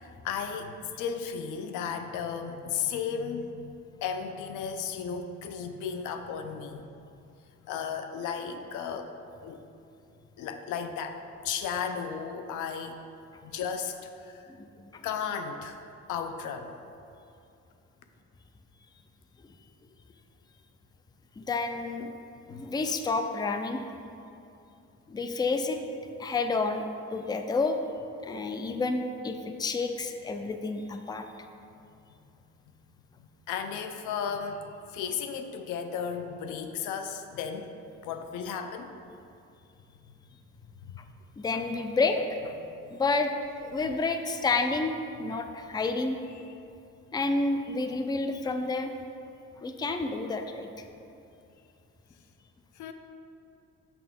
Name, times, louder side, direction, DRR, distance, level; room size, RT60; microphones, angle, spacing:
voice 1, 0.0-3.8 4.0-6.9 7.6-9.7 10.4-11.2 11.4-13.0 13.4-14.5 15.0-15.8 16.1-16.7 22.5-22.6 33.2-37.7 38.0-39.0 40.8-41.0 42.8-42.9 46.3-46.5 52.8-52.9, left 6 dB, 90° left, 7 dB, 0.5 m, -35 dB
voice 2, 21.4-22.1 22.5-23.8 25.1-25.8 26.2-26.8 27.1-27.8 28.2-31.2 41.4-42.5 42.9-43.3 43.6-46.2 47.1-48.9 49.6-50.7, left 3 dB, 15° left, 7 dB, 0.4 m, -29 dB
6.0 x 5.8 x 3.6 m, 2.6 s
cardioid pair, 90°, 30 cm